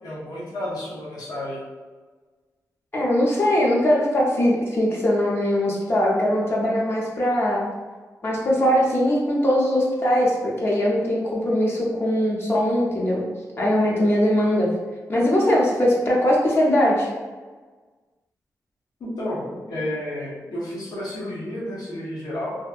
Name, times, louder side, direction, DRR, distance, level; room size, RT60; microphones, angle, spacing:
voice 1, 0.0-1.6 19.0-22.6, left 1 dB, 75° left, -7 dB, 0.7 m, -31 dB
voice 2, 2.9-7.6 8.2-13.2 13.6-14.7 15.1-17.1, equal, 35° left, -4 dB, 0.5 m, -21 dB
2.6 x 2.5 x 2.3 m, 1.4 s
wide cardioid pair, 160°, 7 cm